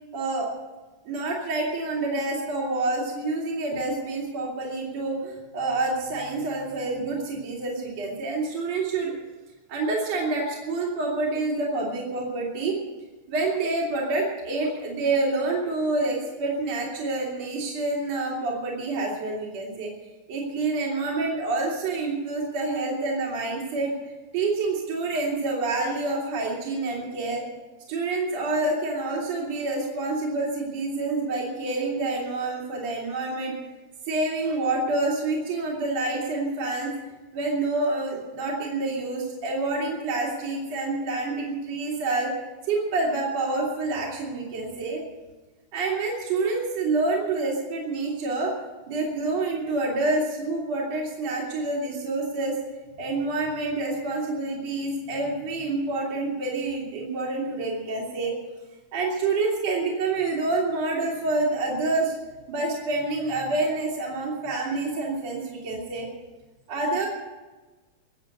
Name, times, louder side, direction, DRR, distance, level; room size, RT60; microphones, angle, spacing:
voice 1, 0.1-0.5 1.1-9.1 9.7-12.8 13.3-19.9 20.3-23.9 24.3-27.4 27.9-33.6 34.1-36.9 37.3-42.3 42.6-45.0 45.7-48.5 48.9-52.6 53.0-58.3 58.9-62.1 62.5-66.1 66.7-67.1, right 3 dB, 55° right, -3 dB, 4.2 m, -27 dB
22.5 x 8.1 x 7.9 m, 1.3 s
omnidirectional pair, 3.5 m